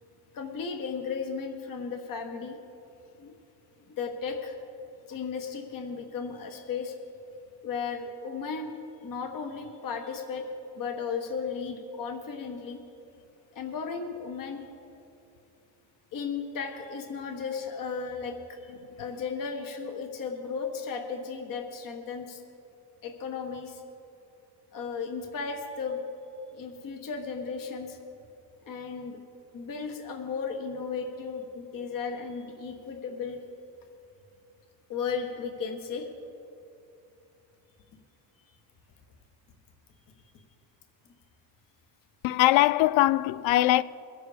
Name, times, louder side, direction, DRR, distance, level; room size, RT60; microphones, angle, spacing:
voice 1, 0.3-2.6 3.2-3.3 4.0-4.6 5.1-6.9 7.6-8.7 9.0-10.4 10.7-12.8 13.5-14.6 16.1-18.7 19.0-22.4 23.0-23.8 24.7-26.0 26.5-28.0 28.7-29.2 29.5-33.4 34.9-36.1, left 5 dB, 45° left, 1.5 m, -35 dB
voice 2, 42.2-43.8, left 16 dB, 80° left, 0.5 m, -21 dB
22.5 x 7.8 x 5.1 m
cardioid pair, 110°, 46 cm